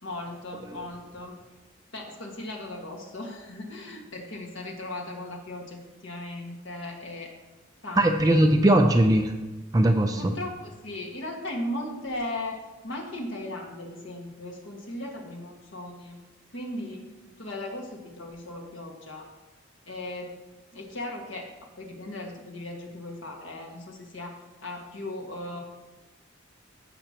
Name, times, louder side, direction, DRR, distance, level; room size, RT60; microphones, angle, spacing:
voice 1, 0.0-1.3 1.9-7.3 7.8-8.6 10.2-16.2 16.5-17.0 17.4-19.3 19.9-20.3 20.7-21.5 21.8-25.6, left 1 dB, 65° left, 0 dB, 1.7 m, -37 dB
voice 2, 8.0-9.3 9.7-10.3, right 1 dB, 20° right, 4 dB, 0.4 m, -20 dB
15.5 x 6.1 x 2.9 m, 1.2 s
head